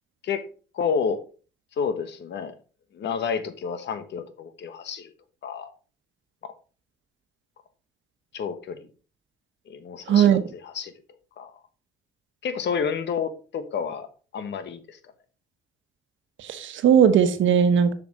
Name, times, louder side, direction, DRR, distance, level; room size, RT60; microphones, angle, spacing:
voice 1, 0.7-1.2 1.8-2.5 2.9-5.1 5.4-5.7 6.4-6.5 8.3-8.9 9.7-10.9 11.4-11.5 12.4-14.1 14.3-15.0, left 6 dB, 65° left, 10 dB, 1.3 m, -30 dB
voice 2, 10.1-10.4 16.4-17.9, right 8 dB, 75° right, 10 dB, 1.2 m, -18 dB
7.2 x 5.8 x 4.3 m, 0.37 s
cardioid pair, 90°, 20 cm